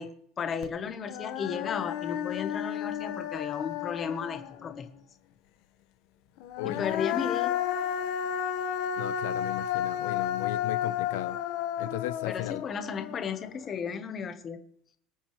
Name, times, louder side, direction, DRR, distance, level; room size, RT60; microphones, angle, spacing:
voice 1, 0.0-4.9 6.6-7.6 12.3-14.6, left 6 dB, 20° left, 1.1 m, -34 dB
Human voice, 0.6-0.7 1.1-4.7 6.4-13.7, left 10 dB, 55° left, 1.2 m, -32 dB
voice 2, 9.0-11.4 11.8-12.6, left 15 dB, 85° left, 0.7 m, -36 dB
24.5 x 8.9 x 3.2 m
cardioid pair, 180°, 0 cm